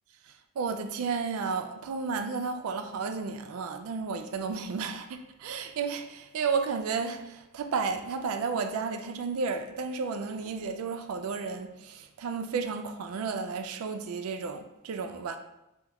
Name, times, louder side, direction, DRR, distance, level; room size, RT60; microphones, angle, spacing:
voice 1, 0.3-15.4, right 5 dB, 70° right, 0.3 m, -32 dB
3.4 x 2.3 x 3.0 m
head